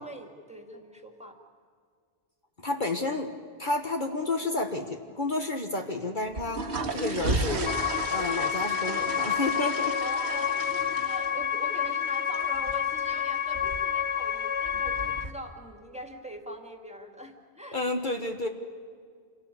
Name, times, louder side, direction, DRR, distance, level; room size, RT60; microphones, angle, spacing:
voice 1, 0.0-1.4 5.6-6.1 8.0-8.3 10.0-17.8, equal, 5° right, 4 dB, 2.3 m, -42 dB
voice 2, 2.6-3.3 3.6-7.7 8.1-10.0 17.7-18.5, left 2 dB, 50° left, 4 dB, 1.5 m, -30 dB
sound 1, 6.2-15.3, right 2 dB, 80° right, 2.1 m, -35 dB
sound 2, 7.6-15.2, left 8 dB, 90° left, 1.2 m, -29 dB
27.0 x 17.5 x 8.5 m, 2.1 s
omnidirectional pair, 1.1 m